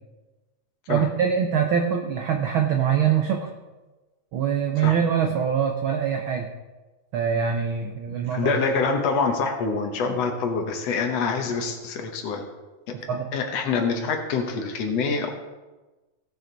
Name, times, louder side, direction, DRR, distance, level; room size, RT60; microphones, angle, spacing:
voice 1, 0.9-3.5 4.3-6.5 7.1-8.5 12.9-13.3, right 8 dB, 90° right, 4 dB, 1.1 m, -24 dB
voice 2, 8.3-12.4 12.9-13.0 13.3-15.3, left 4 dB, 65° left, 4 dB, 2.1 m, -25 dB
17.0 x 7.0 x 4.0 m, 1.2 s
omnidirectional pair, 3.4 m